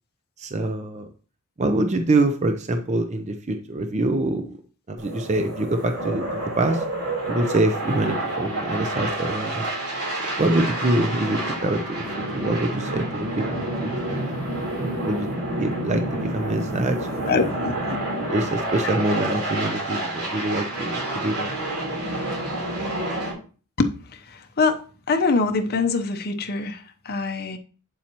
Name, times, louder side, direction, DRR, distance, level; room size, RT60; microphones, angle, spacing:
voice 1, 0.4-1.1 1.6-4.5 4.9-6.3 6.6-6.8 7.3-9.7 10.4-12.0 12.3-14.2 14.8-15.3 15.6-17.7 18.3-21.6, right 2 dB, 30° right, 6 dB, 0.6 m, -25 dB
sound 1, 5.0-23.3, right 1 dB, 80° right, 3.6 m, -29 dB
voice 2, 17.3-17.7 23.8-24.8 25.1-27.6, left 4 dB, 45° left, 5 dB, 0.8 m, -24 dB
8.5 x 7.2 x 2.9 m, 0.38 s
head